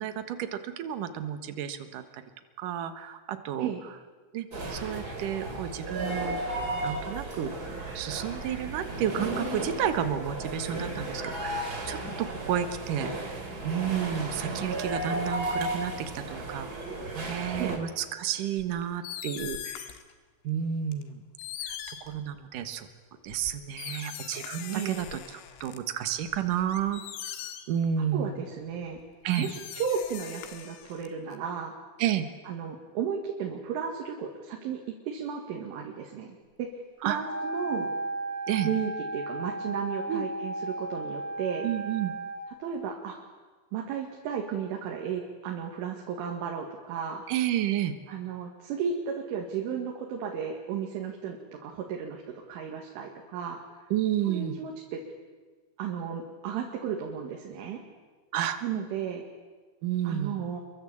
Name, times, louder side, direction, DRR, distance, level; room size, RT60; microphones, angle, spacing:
voice 1, 0.0-2.2 2.6-3.7 4.3-6.4 6.8-7.5 7.9-13.1 13.6-16.7 17.1-20.0 20.4-21.2 21.6-22.9 23.2-27.0 27.7-28.4 29.2-29.5 32.0-32.3 37.0-37.2 38.5-38.7 40.1-40.3 41.6-42.1 47.3-48.0 53.9-54.6 58.3-58.6 59.8-60.4, right 10 dB, 65° right, 9 dB, 2.2 m, -31 dB
sound 1, 4.5-17.8, right 1 dB, 20° right, 3.3 m, -34 dB
sound 2, 18.6-20.1 20.9-21.0 21.4-22.7 23.3-25.8 26.2-27.9 28.9-29.0 29.3-31.4, left 10 dB, 80° left, 4.0 m, -41 dB
voice 2, 24.7-25.0 28.1-29.0 29.4-31.7 32.5-36.7 37.0-37.9 38.7-41.7 42.6-43.2 43.7-47.2 48.1-53.6 54.3-55.0 55.8-57.8 58.6-59.2 60.1-60.6, right 7 dB, 85° right, 1 dB, 4.5 m, -34 dB
Wind instrument woodwind instrument, 37.1-42.4, right 2 dB, ahead, 3.5 m, -35 dB
26.0 x 23.0 x 8.6 m, 1.4 s
omnidirectional pair, 5.5 m